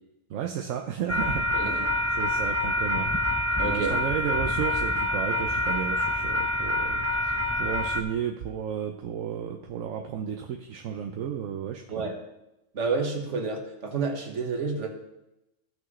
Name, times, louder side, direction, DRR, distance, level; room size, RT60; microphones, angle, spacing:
voice 1, 0.3-1.9 2.2-3.1 3.7-12.1, right 8 dB, 80° right, 4 dB, 1.1 m, -33 dB
sound 1, 1.1-8.0, left 1 dB, 15° left, 0.6 m, -26 dB
voice 2, 1.5-1.9 3.6-3.9 11.9-12.1 12.7-14.9, right 4 dB, 60° right, 2 dB, 1.7 m, -29 dB
16.0 x 6.0 x 3.2 m, 0.93 s
omnidirectional pair, 1.4 m